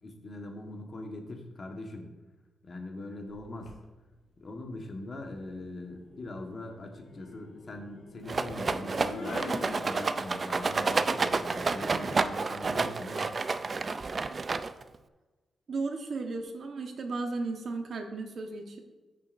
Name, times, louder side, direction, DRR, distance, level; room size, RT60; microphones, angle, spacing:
voice 1, 0.0-2.1 2.6-3.7 4.4-9.5 9.8-13.3, left 2 dB, 40° left, 2 dB, 1.4 m, -41 dB
sound 1, 3.3-3.8 5.2-10.5, left 3 dB, 70° left, 1.7 m, -44 dB
Rattle, 8.3-15.0, right 4 dB, 35° right, 0.4 m, -30 dB
voice 2, 15.7-18.8, right 3 dB, 55° right, 4 dB, 1.2 m, -35 dB
14.0 x 6.6 x 2.6 m, 1.2 s
wide cardioid pair, 125°, 0 cm